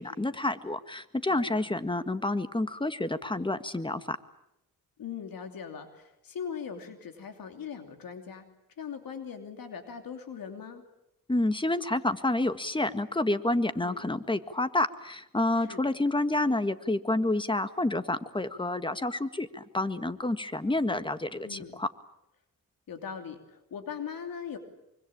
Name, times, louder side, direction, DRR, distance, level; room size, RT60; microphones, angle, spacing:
voice 1, 0.0-4.2 11.3-21.9, left 2 dB, 15° left, 11 dB, 1.8 m, -29 dB
voice 2, 1.3-1.6 5.0-8.5 8.8-10.8 13.8-14.0 15.6-15.9 21.4-21.7 22.9-24.6, left 7 dB, 80° left, 6 dB, 3.0 m, -40 dB
25.0 x 24.5 x 8.8 m, 0.84 s
cardioid pair, 80°, 34 cm